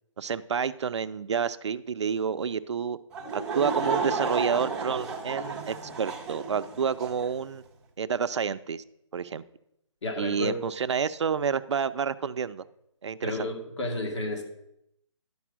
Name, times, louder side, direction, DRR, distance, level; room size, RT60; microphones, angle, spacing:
voice 1, 0.2-3.0 3.3-7.6 8.0-8.8 9.1-9.4 10.2-12.6 13.0-13.5, right 6 dB, 60° right, 13 dB, 0.5 m, -29 dB
Laughter / Crowd, 3.1-7.3, right 4 dB, 5° right, 0.5 m, -32 dB
voice 2, 10.0-10.6 13.2-14.4, left 2 dB, 60° left, 3 dB, 2.3 m, -31 dB
11.0 x 5.4 x 6.0 m, 0.79 s
hypercardioid pair, 165°, 17 cm